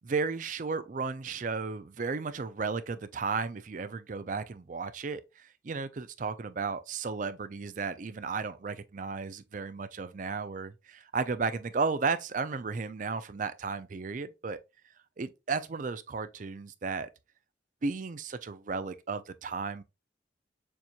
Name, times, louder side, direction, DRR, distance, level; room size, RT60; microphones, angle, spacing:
voice 1, 0.0-14.6 15.2-17.1 17.8-19.8, right 4 dB, 45° right, 0.4 m, -34 dB
6.8 x 3.0 x 2.3 m
head